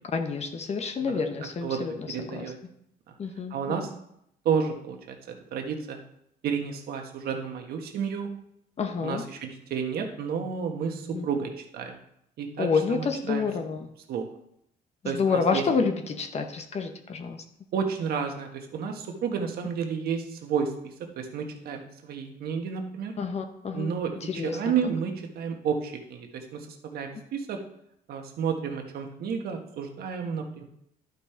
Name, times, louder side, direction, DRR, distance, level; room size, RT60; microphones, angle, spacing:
voice 1, 0.1-2.5 3.2-3.9 8.8-9.3 11.1-11.3 12.6-13.9 15.0-17.4 23.2-23.9 24.2-24.7, left 5 dB, 40° left, 6 dB, 0.9 m, -29 dB
voice 2, 2.1-2.6 3.1-3.2 3.5-3.9 4.4-5.1 5.5-6.0 6.4-8.3 9.0-12.0 12.4-13.5 14.1-14.2 15.0-15.6 17.7-20.7 21.2-23.1 23.7-27.6 28.1-30.6, right 6 dB, 65° right, 4 dB, 1.5 m, -31 dB
11.5 x 5.4 x 4.5 m, 0.75 s
cardioid pair, 110°, 17 cm